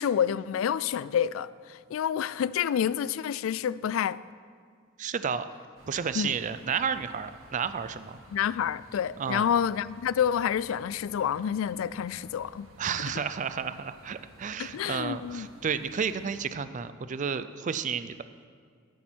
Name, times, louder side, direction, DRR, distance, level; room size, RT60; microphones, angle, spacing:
voice 1, 0.0-4.2 6.1-6.3 8.3-12.7 14.6-15.5, left 8 dB, 80° left, 0.3 m, -28 dB
voice 2, 5.0-5.5 5.9-8.2 9.2-9.5 12.8-18.1, right 6 dB, 40° right, 0.4 m, -31 dB
sound 1, 5.8-16.5, right 1 dB, 75° right, 1.9 m, -54 dB
12.5 x 9.9 x 4.4 m
head